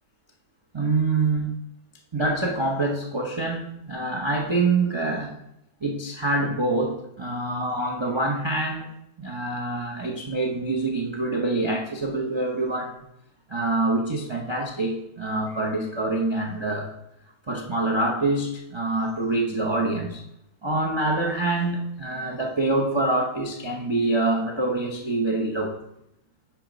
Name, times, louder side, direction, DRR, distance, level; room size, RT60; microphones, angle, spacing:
voice 1, 0.7-1.5 2.1-5.3 5.8-8.9 9.2-13.0 13.5-16.9 17.5-20.2 20.6-25.8, right 2 dB, 35° right, 0 dB, 0.4 m, -25 dB
9.4 x 3.5 x 5.0 m, 0.82 s
omnidirectional pair, 1.8 m